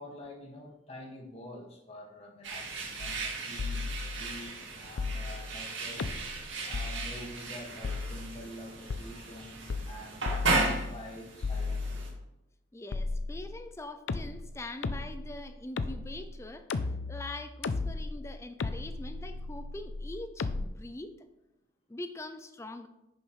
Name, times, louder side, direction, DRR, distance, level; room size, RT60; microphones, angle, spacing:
voice 1, 0.0-6.1 6.6-12.1, left 1 dB, 30° left, -1 dB, 1.7 m, -47 dB
sound 1, 2.4-12.1, right 3 dB, 70° right, 2.2 m, -36 dB
sound 2, 3.0-3.3 3.6-4.4 5.0-5.6 6.0-6.4 6.7-7.3 7.8-8.5 8.9-9.0 9.7-10.0 10.3-11.1 11.4-12.3 12.9-13.7 14.1-20.7, left 3 dB, 75° left, 0.5 m, -35 dB
voice 2, 12.7-21.3 21.9-22.9, left 2 dB, 15° left, 9 dB, 0.4 m, -43 dB
10.0 x 6.8 x 3.2 m, 0.91 s
head